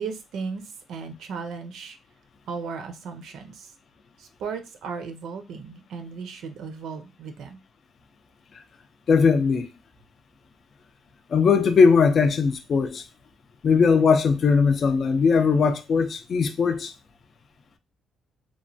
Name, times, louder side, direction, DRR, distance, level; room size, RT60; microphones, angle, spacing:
voice 1, 0.0-2.0 2.5-3.7 4.2-7.6, right 5 dB, 80° right, 0.5 m, -36 dB
voice 2, 9.1-9.7 11.3-13.0 13.6-16.9, left 5 dB, 50° left, 0.4 m, -19 dB
3.0 x 2.2 x 2.6 m
cardioid pair, 90°, 0 cm